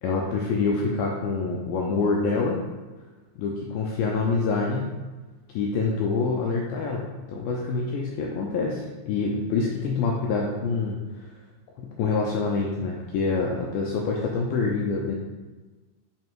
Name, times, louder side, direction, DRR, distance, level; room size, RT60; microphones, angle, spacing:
voice 1, 0.0-2.6 3.4-4.9 5.5-11.3 11.8-15.1, left 4 dB, 80° left, -1 dB, 2.1 m, -26 dB
7.3 x 3.0 x 4.4 m, 1.2 s
omnidirectional pair, 4.7 m